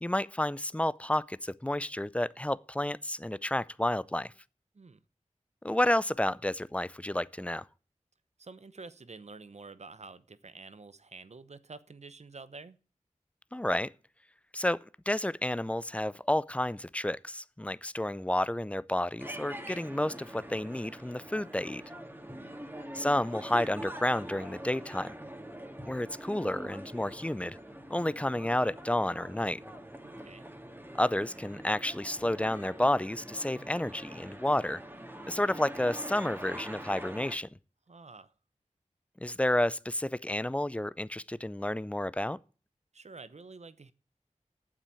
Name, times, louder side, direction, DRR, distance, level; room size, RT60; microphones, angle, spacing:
voice 1, 0.0-4.3 5.6-7.7 13.5-13.9 14.5-21.8 22.9-25.1 25.9-27.6 27.9-29.6 30.9-34.8 35.3-37.5 39.2-42.4, left 1 dB, 10° left, 0.5 m, -30 dB
voice 2, 8.4-12.8 22.3-22.6 30.0-30.5 37.9-38.3 42.9-43.9, right 3 dB, 60° right, 0.8 m, -49 dB
sound 1, 19.2-37.4, right 1 dB, 15° right, 1.9 m, -44 dB
8.9 x 7.4 x 8.4 m
wide cardioid pair, 50°, 13 cm